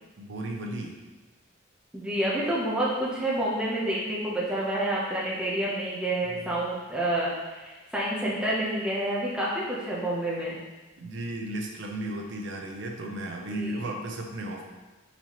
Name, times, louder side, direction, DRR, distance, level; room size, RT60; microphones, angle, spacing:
voice 1, 0.2-1.0 6.2-6.5 11.0-14.6, right 1 dB, 60° right, 1 dB, 0.6 m, -35 dB
voice 2, 1.9-10.6 13.6-13.7, right 1 dB, 5° right, -7 dB, 0.6 m, -28 dB
4.2 x 4.2 x 2.9 m, 1.2 s
head